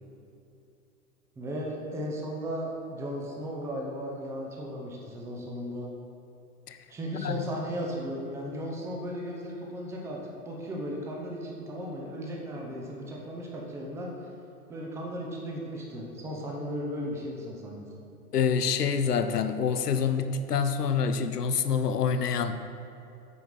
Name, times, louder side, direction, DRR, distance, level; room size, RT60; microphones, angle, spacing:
voice 1, 1.4-5.9 6.9-14.3 14.7-17.9, equal, 5° right, -2 dB, 0.6 m, -36 dB
voice 2, 18.3-22.6, left 6 dB, 85° left, 10 dB, 0.7 m, -26 dB
8.3 x 4.6 x 5.5 m, 2.8 s
hypercardioid pair, 120°, 46 cm